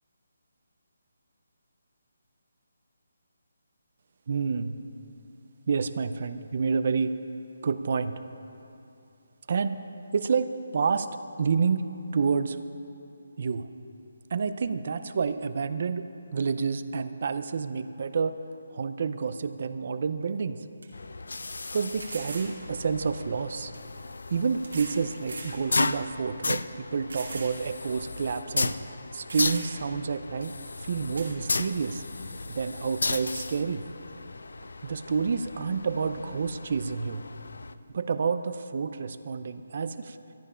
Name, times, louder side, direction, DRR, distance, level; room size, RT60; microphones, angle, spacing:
voice 1, 4.3-4.7 5.7-7.1 7.6-8.1 9.5-9.8 10.1-11.1 11.4-11.8 12.1-12.6 13.4-13.7 14.3-16.1 16.3-18.4 18.7-20.6 21.7-23.7 24.3-28.8 29.1-30.5 30.8-32.0 32.5-33.8 34.8-37.2 37.9-40.2, right 5 dB, 35° right, 12 dB, 0.5 m, -29 dB
sound 1, 20.2-20.3 20.8-20.9 22.0-22.5 23.7-23.8 24.6-25.0 25.3-25.6 26.1-26.2 27.1-27.5 27.9-28.0 28.9-29.0 29.3-29.9 31.2-31.3, right 3 dB, 80° right, 2.6 m, -40 dB
sound 2, 20.9-37.8, left 3 dB, 85° left, 0.5 m, -35 dB
13.5 x 11.0 x 5.6 m, 2.7 s
hypercardioid pair, 180°, 0 cm